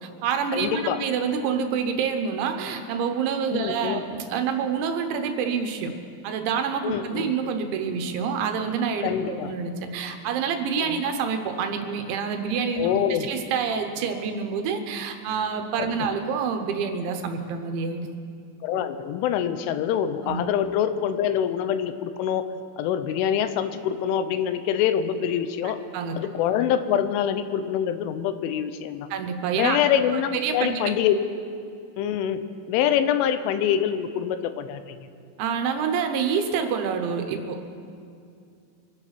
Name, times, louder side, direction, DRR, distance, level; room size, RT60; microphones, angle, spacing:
voice 1, 0.0-5.9 6.2-18.1 20.2-20.4 25.9-26.2 29.1-29.8 30.4-30.8 35.4-37.6, right 6 dB, 80° right, 5 dB, 3.3 m, -27 dB
voice 2, 0.5-1.0 3.5-4.0 6.8-7.3 9.0-9.5 10.8-11.0 12.8-13.3 15.8-15.9 18.6-22.5 22.8-25.8 26.2-29.1 29.5-31.2 32.0-35.1, left 9 dB, 85° left, 10 dB, 3.2 m, -25 dB
24.0 x 9.5 x 5.9 m, 2.4 s
omnidirectional pair, 5.5 m